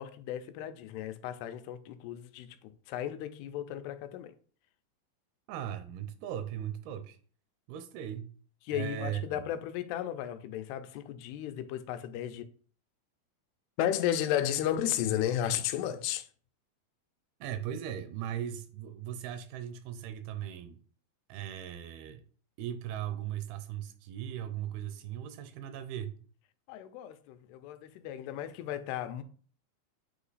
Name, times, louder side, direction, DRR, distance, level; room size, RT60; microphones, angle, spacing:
voice 1, 0.0-4.3 8.7-12.4 13.8-16.3 26.7-29.2, left 11 dB, 90° left, 2.6 m, -34 dB
voice 2, 5.5-7.2 7.7-8.3 8.7-9.5 17.4-20.8 21.3-22.2 22.6-26.2, right 10 dB, 80° right, 2.5 m, -38 dB
8.4 x 2.9 x 4.0 m
omnidirectional pair, 4.5 m